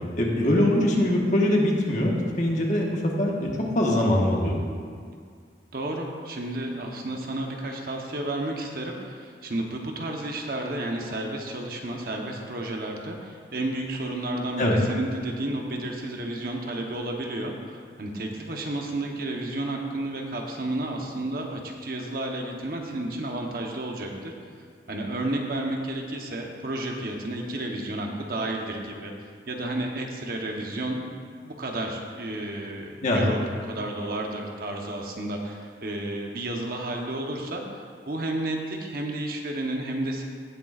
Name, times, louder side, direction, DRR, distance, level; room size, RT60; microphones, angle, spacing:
voice 1, 0.2-3.5 3.7-4.6 14.6-14.8 33.0-33.2, left 1 dB, 45° left, -2 dB, 1.4 m, -22 dB
voice 2, 5.7-24.3 24.9-29.1 29.5-31.1 31.4-40.2, right 1 dB, 55° right, 1 dB, 1.0 m, -32 dB
17.5 x 6.8 x 2.5 m, 2.1 s
head